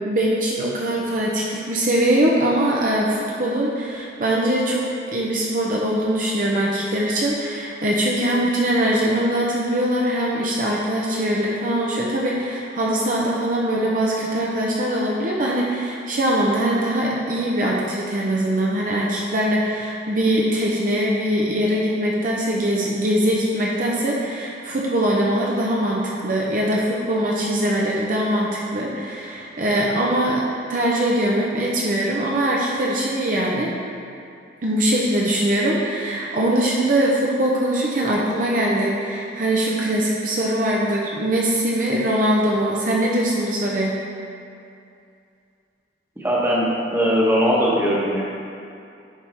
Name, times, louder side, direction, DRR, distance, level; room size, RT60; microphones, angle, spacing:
voice 1, 0.0-4.8 5.1-30.4 30.7-33.7 34.6-43.9, right 1 dB, 45° right, -4 dB, 0.7 m, -22 dB
voice 2, 46.2-48.2, equal, 15° right, -6 dB, 1.2 m, -20 dB
10.5 x 3.6 x 4.4 m, 2.5 s
head